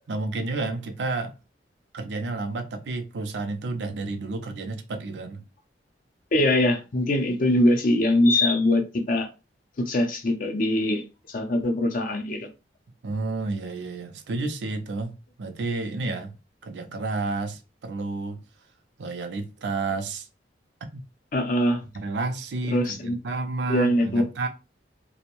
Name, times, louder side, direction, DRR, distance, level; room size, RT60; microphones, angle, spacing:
voice 1, 0.1-1.3 1.9-5.5 13.0-15.1 15.4-16.3 16.6-18.4 19.0-20.3 20.9-21.0 21.9-24.5, right 3 dB, 75° right, 0.4 m, -30 dB
voice 2, 6.3-9.3 9.8-11.0 11.3-12.5 21.3-21.8 22.7-23.2 23.7-24.2, left 1 dB, 50° left, 0.5 m, -22 dB
2.6 x 2.0 x 2.9 m
head